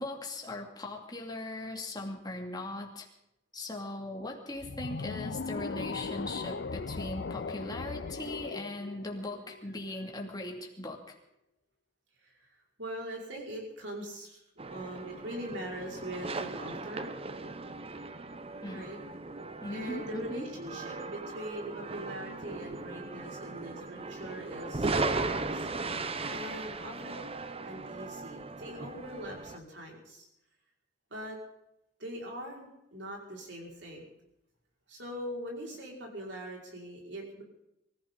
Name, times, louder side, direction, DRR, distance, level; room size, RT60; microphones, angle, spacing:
voice 1, 0.0-3.1 3.5-11.1 18.6-18.8 19.6-20.5, left 2 dB, 20° left, 0 dB, 2.5 m, -39 dB
sound 1, 4.6-9.8, left 4 dB, 60° left, 0.5 m, -38 dB
voice 2, 12.8-14.4 14.7-17.1 18.7-19.0 19.7-25.7 26.3-27.2 27.6-30.3 31.1-31.4 32.0-34.0 34.9-37.4, equal, 70° right, -1 dB, 5.4 m, -42 dB
sound 2, 14.6-29.6, right 3 dB, 30° right, 0.8 m, -37 dB
24.0 x 15.0 x 4.0 m, 0.85 s
head